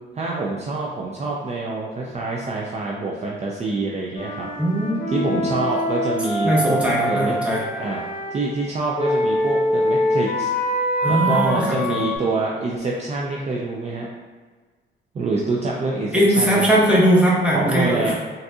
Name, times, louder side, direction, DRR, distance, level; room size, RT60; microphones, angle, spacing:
voice 1, 0.1-4.5 5.1-6.8 7.1-7.3 7.8-8.0 8.3-10.5 11.1-14.1 15.1-16.7 17.5-18.1, right 3 dB, 35° right, -3 dB, 0.4 m, -26 dB
Wind instrument woodwind instrument, 4.2-8.4 9.0-12.2, equal, 45° left, 0.7 m, -24 dB
voice 2, 4.6-5.4 6.4-7.6 11.0-11.8 16.1-18.1, equal, 5° right, -5 dB, 1.0 m, -19 dB
3.9 x 2.6 x 2.3 m, 1.4 s
cardioid pair, 90°, 20 cm